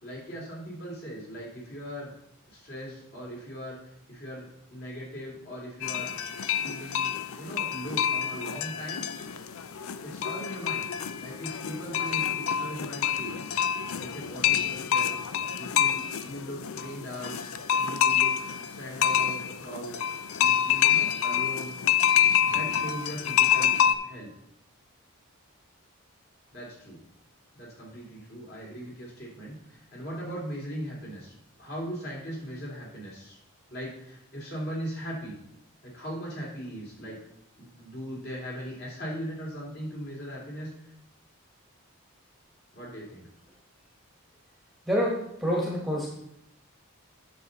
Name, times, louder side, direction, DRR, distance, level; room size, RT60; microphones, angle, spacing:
voice 1, 0.0-2.1 2.5-6.2 6.6-9.1 10.0-10.9 11.2-13.5 14.0-15.2 15.6-17.4 17.7-18.4 18.6-20.0 20.3-21.8 22.5-23.8 24.0-24.3 26.5-27.0 27.5-31.3 31.6-33.4 33.7-35.4 35.8-37.2 37.6-40.9 42.7-43.3, equal, 45° left, -4 dB, 3.2 m, -39 dB
sound 1, 5.8-24.0, left 9 dB, 70° left, 0.5 m, -27 dB
voice 2, 44.9-46.1, equal, ahead, -4 dB, 1.4 m, -27 dB
9.5 x 6.8 x 4.0 m, 0.77 s
head